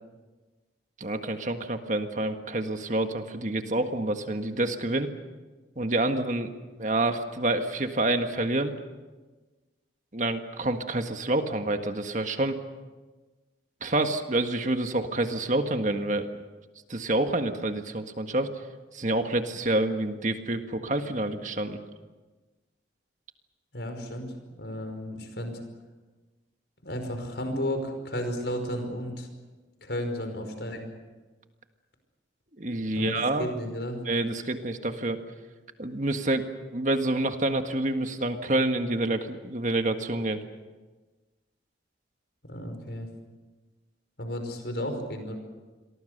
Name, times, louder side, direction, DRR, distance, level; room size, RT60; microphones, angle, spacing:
voice 1, 1.0-5.1 5.8-8.7 10.1-12.6 13.8-16.3 16.9-18.5 18.9-21.8 32.6-33.5 34.0-35.2 35.8-36.5 36.7-40.4, right 2 dB, 45° right, 6 dB, 1.7 m, -28 dB
voice 2, 23.7-24.3 24.6-25.6 26.8-29.3 29.8-30.9 32.9-34.0 42.5-43.1 44.2-45.4, equal, 70° left, 6 dB, 5.3 m, -33 dB
29.0 x 23.0 x 6.7 m, 1.3 s
head